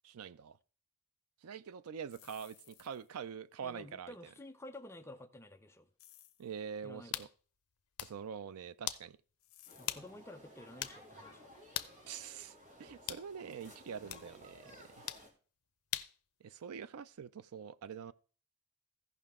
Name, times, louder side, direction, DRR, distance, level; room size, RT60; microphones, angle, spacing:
voice 1, 0.0-0.6 1.4-4.1 6.4-7.3 8.0-9.2 12.1-15.0 16.4-18.1, right 7 dB, 85° right, 0.4 m, -45 dB
sound 1, 2.1-3.2 6.0-6.5 9.4-10.1, left 14 dB, 65° left, 1.0 m, -60 dB
voice 2, 3.6-5.9 6.8-7.3 9.8-11.5 14.6-14.8, left 1 dB, 10° left, 0.6 m, -51 dB
sound 2, 7.1-7.3 7.8-8.2 8.9-9.1 9.9-10.1 10.4-10.5 10.8-11.0 11.7-12.0 13.1-13.3 14.1-14.3 15.1-15.3 15.9-16.2, left 13 dB, 85° left, 0.6 m, -39 dB
sound 3, 9.7-15.3, equal, 35° right, 2.7 m, -56 dB
15.5 x 5.6 x 3.6 m
head